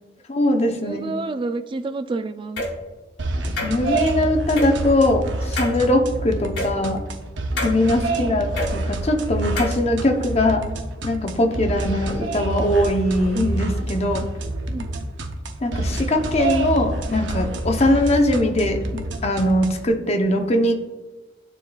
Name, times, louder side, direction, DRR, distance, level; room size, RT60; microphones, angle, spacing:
voice 1, 0.3-1.1 3.6-7.0 7.6-10.6 11.0-14.2 15.6-20.7, left 1 dB, 35° left, 4 dB, 0.7 m, -21 dB
voice 2, 0.8-2.6 8.2-8.5 14.7-14.9, right 3 dB, 25° right, 10 dB, 0.3 m, -29 dB
sound 1, 2.6-2.7 3.6-4.1 4.6-4.7 5.6-5.8 6.6-6.7 7.6-7.7 8.6-8.7 9.6-9.8, left 1 dB, 80° left, 1.9 m, -27 dB
sound 2, 3.2-19.9, right 2 dB, 85° right, 0.7 m, -27 dB
11.5 x 4.0 x 2.3 m, 1.2 s
head